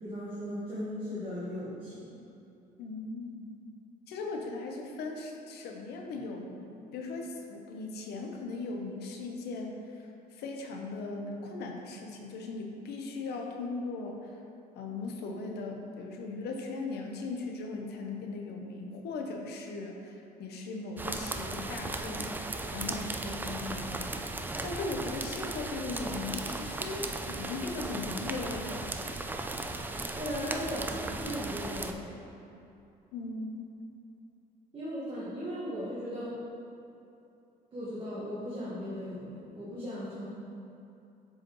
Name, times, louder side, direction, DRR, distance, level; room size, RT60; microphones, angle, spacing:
voice 1, 0.0-2.2 30.1-32.2 34.7-36.4 37.7-40.3, equal, 30° right, -9 dB, 1.5 m, -37 dB
voice 2, 2.8-3.5 4.1-14.3 14.7-24.2 24.6-28.7 33.1-33.7, left 3 dB, 75° left, 2 dB, 0.8 m, -38 dB
sound 1, 21.0-31.9, right 2 dB, 10° right, 0.3 m, -36 dB
7.6 x 4.8 x 3.0 m, 2.7 s
cardioid pair, 110°, 17 cm